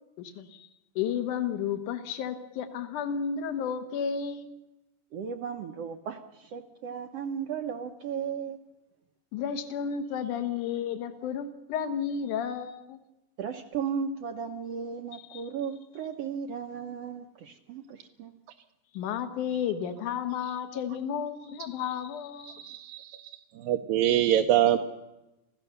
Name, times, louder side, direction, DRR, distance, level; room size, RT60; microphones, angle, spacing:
voice 1, 0.2-0.7 1.0-4.6 9.3-13.0 15.1-15.5 18.9-22.8, left 7 dB, 70° left, 8 dB, 2.8 m, -32 dB
voice 2, 5.1-8.6 13.4-18.3, right 7 dB, 70° right, 7 dB, 1.5 m, -35 dB
voice 3, 22.5-23.1 23.6-24.8, right 11 dB, 85° right, 3 dB, 2.6 m, -24 dB
28.0 x 16.0 x 6.8 m, 0.97 s
omnidirectional pair, 3.9 m